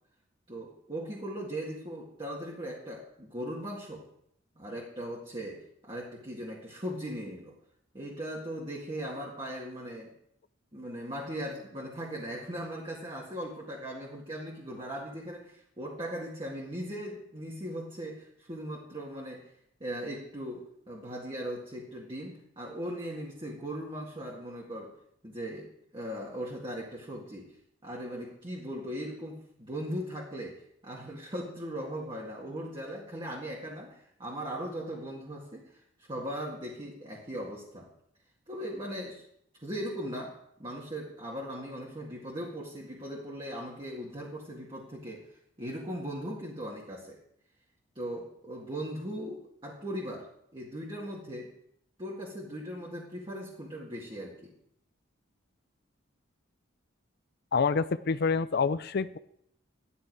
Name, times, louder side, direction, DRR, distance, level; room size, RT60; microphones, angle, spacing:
voice 1, 0.5-4.1 4.6-7.6 7.9-10.1 10.7-19.5 19.8-24.9 25.2-27.6 27.8-37.9 38.5-39.2 39.6-47.2 48.0-51.5 52.0-54.5, equal, 25° right, -3 dB, 2.0 m, -39 dB
voice 2, 57.5-59.2, left 5 dB, 55° left, 14 dB, 0.5 m, -27 dB
14.5 x 11.5 x 4.7 m, 0.72 s
head